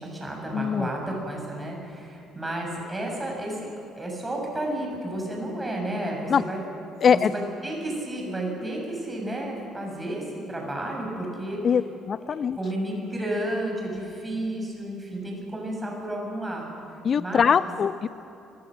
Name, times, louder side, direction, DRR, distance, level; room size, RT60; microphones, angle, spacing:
voice 1, 0.0-3.7 4.0-6.6 7.1-11.6 12.6-17.5, right 1 dB, 15° right, 0 dB, 7.4 m, -32 dB
voice 2, 0.5-0.9 6.3-6.4 7.0-7.3 11.6-11.8 12.1-12.6 17.0-18.1, left 7 dB, 40° left, 17 dB, 0.4 m, -22 dB
24.0 x 21.5 x 6.6 m, 2.9 s
figure-of-eight pair, 50°, 0 cm